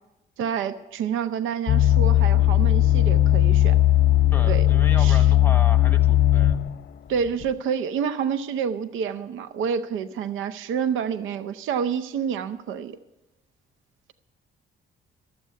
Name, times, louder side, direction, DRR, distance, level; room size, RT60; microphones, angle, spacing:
voice 1, 0.4-3.8 4.5-4.7 5.0-5.3 7.1-13.0, right 7 dB, 80° right, 12 dB, 0.7 m, -28 dB
sound 1, 1.7-6.8 7.4-7.5, left 14 dB, 55° left, 0.6 m, -18 dB
voice 2, 4.3-6.6, left 2 dB, 10° left, 5 dB, 1.2 m, -35 dB
12.5 x 7.3 x 9.4 m, 0.96 s
cardioid pair, 90°, 20 cm